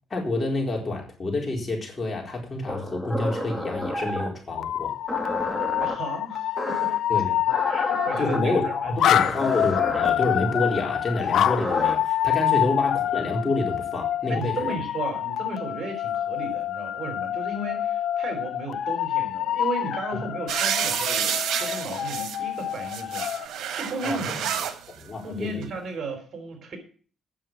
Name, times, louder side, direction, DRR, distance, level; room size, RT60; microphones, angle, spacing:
voice 1, 0.1-4.9 7.1-7.4 8.2-14.7 24.0-24.2 24.9-25.6, left 2 dB, 30° left, 0 dB, 4.2 m, -28 dB
sound 1, 2.7-4.4 5.1-6.0 6.6-7.0 7.5-8.4 9.2-10.1 11.2-11.9, left 1 dB, ahead, 2.4 m, -31 dB
sound 2, 4.5-23.4, left 11 dB, 70° left, 0.5 m, -27 dB
voice 2, 5.8-7.0 7.7-9.5 12.5-12.7 14.3-24.6 25.1-26.8, right 3 dB, 50° right, 6 dB, 3.8 m, -35 dB
sound 3, 20.5-22.4 22.8-24.7 25.6-25.7, right 8 dB, 75° right, 1.5 m, -28 dB
9.2 x 7.5 x 7.5 m, 0.42 s
cardioid pair, 90°, 0 cm